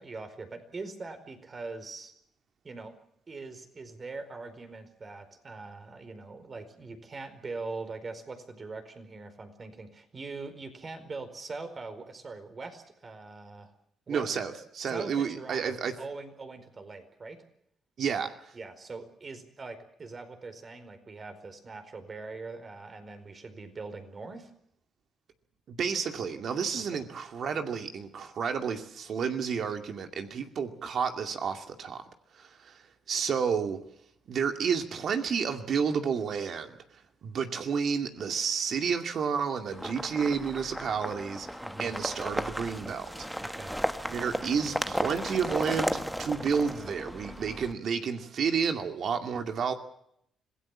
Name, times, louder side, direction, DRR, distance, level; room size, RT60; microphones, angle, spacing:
voice 1, 0.0-2.1 2.6-2.9 3.3-13.7 14.1-14.4 14.8-17.4 18.5-24.5 26.9-27.0 41.6-41.9 43.4-43.7, right 3 dB, 35° right, 4.6 m, -42 dB
voice 2, 14.1-15.9 18.0-18.3 25.7-32.0 32.3-33.8 34.3-41.5 41.8-43.3 44.1-49.7, right 6 dB, 60° right, 2.4 m, -31 dB
sound 1, 39.7-47.7, equal, ahead, 1.2 m, -34 dB
26.0 x 17.0 x 7.4 m
cardioid pair, 90°, 0 cm